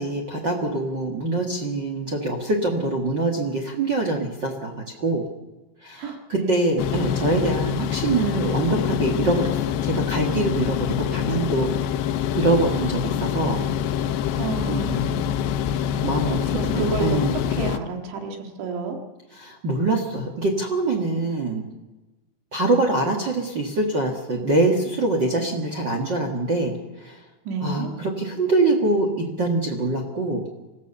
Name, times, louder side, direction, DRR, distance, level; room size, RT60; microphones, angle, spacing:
voice 1, 0.0-4.7 5.0-5.2 5.8-11.7 12.3-13.6 14.0-14.2 14.7-15.2 16.0-17.4 19.3-21.6 22.5-27.2 27.6-30.4, right 2 dB, 60° right, 2 dB, 1.1 m, -24 dB
voice 2, 6.0-6.5 14.4-15.1 16.2-17.2 17.6-19.0 27.5-27.9, right 5 dB, 80° right, 3 dB, 4.2 m, -30 dB
sound 1, 6.8-17.8, left 9 dB, 80° left, 2.9 m, -25 dB
25.5 x 15.5 x 7.0 m, 1.1 s
omnidirectional pair, 5.1 m